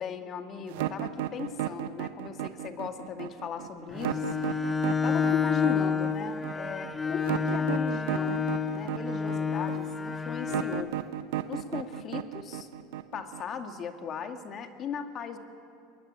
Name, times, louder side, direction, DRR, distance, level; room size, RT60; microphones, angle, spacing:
voice 1, 0.0-4.4 5.0-8.4 8.7-10.9 11.5-12.7 13.1-15.4, left 7 dB, 40° left, 6 dB, 2.2 m, -37 dB
sound 1, 0.7-13.6, right 13 dB, 75° right, 1.1 m, -34 dB
Bowed string instrument, 3.9-11.0, left 6 dB, 15° left, 1.2 m, -29 dB
23.5 x 19.5 x 8.9 m, 2.3 s
supercardioid pair, 100°, 0 cm